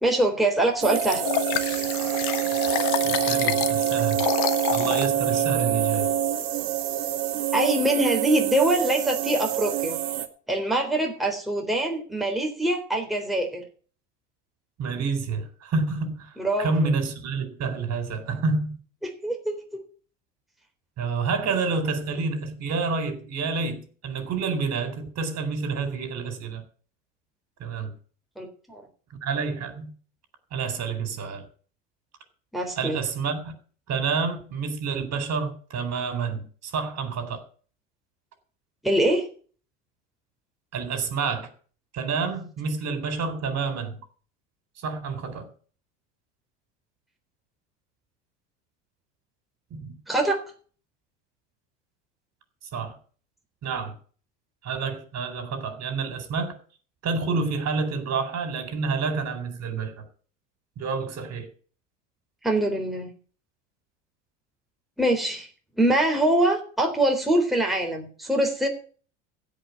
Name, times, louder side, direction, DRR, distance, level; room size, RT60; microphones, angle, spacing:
voice 1, 0.0-1.2 7.5-10.0 10.5-13.6 16.4-16.7 19.0-19.8 28.4-28.8 32.5-33.0 38.8-39.3 50.1-50.4 62.4-63.1 65.0-65.5 65.8-68.7, right 1 dB, ahead, 3.6 m, -24 dB
sound 1, 0.8-10.3, right 10 dB, 60° right, 2.1 m, -26 dB
Liquid, 0.9-5.1 5.6-5.7, left 15 dB, 60° left, 1.3 m, -29 dB
voice 2, 3.0-4.2 4.7-6.1 14.8-18.8 21.0-26.6 27.6-27.9 29.2-29.9 30.5-31.5 32.8-33.5 33.9-37.4 40.7-41.5 41.9-44.0 44.8-45.5 49.7-50.0 52.7-53.0 53.6-53.9 54.6-56.6 57.0-60.0 60.8-61.5, right 4 dB, 45° right, 4.3 m, -28 dB
16.0 x 5.6 x 8.4 m
hypercardioid pair, 80°, 38 cm